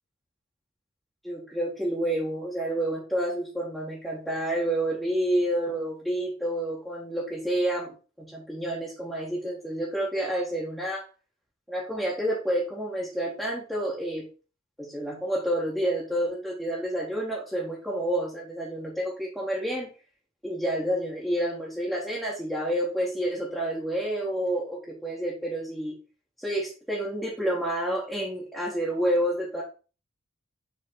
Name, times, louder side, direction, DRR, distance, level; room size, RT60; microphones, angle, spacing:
voice 1, 1.2-11.1 11.7-14.3 14.8-19.9 20.4-25.9 26.4-29.6, right 1 dB, ahead, -6 dB, 2.0 m, -29 dB
7.2 x 4.4 x 4.0 m, 0.34 s
head